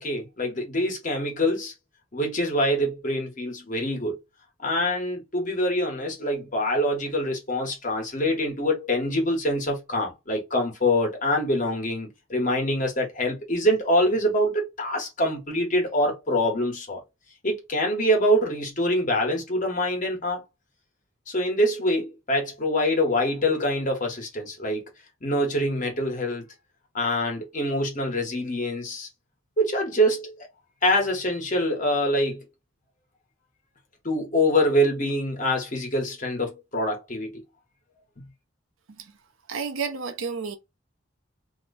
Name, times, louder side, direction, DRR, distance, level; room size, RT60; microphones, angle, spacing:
voice 1, 0.0-1.7 2.1-4.2 4.6-17.0 17.4-20.4 21.3-24.8 25.2-26.4 26.9-29.1 29.6-30.5 30.8-32.4 34.0-37.4, equal, 40° left, 1.2 m, -25 dB
voice 2, 39.5-40.6, right 5 dB, 85° right, 0.7 m, -31 dB
2.9 x 2.2 x 4.0 m
head